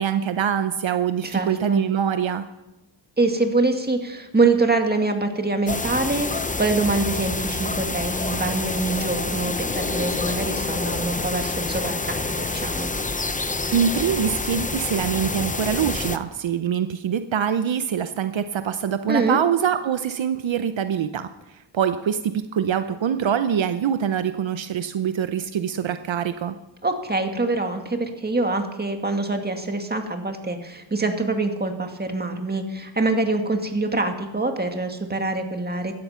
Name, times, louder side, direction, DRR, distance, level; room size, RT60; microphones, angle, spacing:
voice 1, 0.0-2.4 13.7-21.3 21.7-26.6, right 8 dB, 70° right, 10 dB, 0.8 m, -24 dB
voice 2, 1.2-1.8 3.2-12.9 19.1-19.4 26.8-35.9, right 3 dB, 20° right, 5 dB, 2.0 m, -25 dB
sound 1, 5.7-16.2, left 3 dB, 15° left, 0.7 m, -27 dB
16.5 x 12.5 x 5.7 m, 1.0 s
wide cardioid pair, 95°, 47 cm